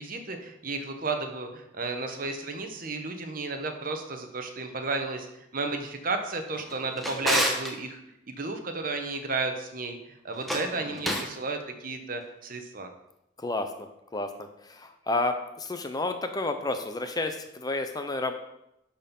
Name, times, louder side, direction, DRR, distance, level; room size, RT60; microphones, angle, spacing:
voice 1, 0.0-5.3 5.5-8.0 8.3-12.9, right 3 dB, 45° right, 5 dB, 1.1 m, -33 dB
Drawer open or close, 6.5-7.7 10.3-11.4, equal, ahead, 1.1 m, -30 dB
voice 2, 13.4-18.3, left 2 dB, 20° left, 7 dB, 0.6 m, -31 dB
11.5 x 4.4 x 5.3 m, 0.85 s
head